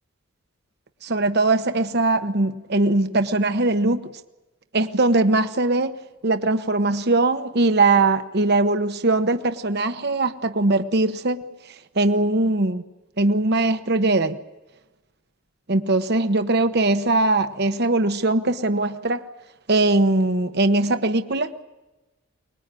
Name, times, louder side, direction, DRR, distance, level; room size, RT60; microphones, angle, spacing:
voice 1, 1.0-4.1 4.7-5.9 6.2-11.4 11.9-12.8 13.2-14.4 15.7-19.2 19.7-21.5, right 2 dB, 50° right, 8 dB, 1.1 m, -21 dB
24.5 x 21.0 x 9.1 m, 1.1 s
head